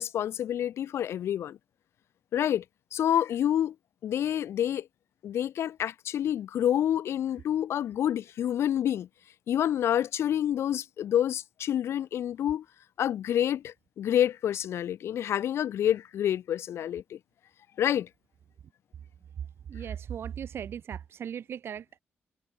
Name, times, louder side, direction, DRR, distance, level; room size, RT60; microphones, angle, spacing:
voice 1, 0.0-1.6 2.3-2.6 2.9-3.7 4.0-4.9 5.2-9.1 9.5-12.6 13.0-17.2 17.8-18.1, left 10 dB, 85° left, 1.0 m, -28 dB
voice 2, 19.7-22.0, right 8 dB, 70° right, 2.7 m, -37 dB
wide cardioid pair, 130°, 4 cm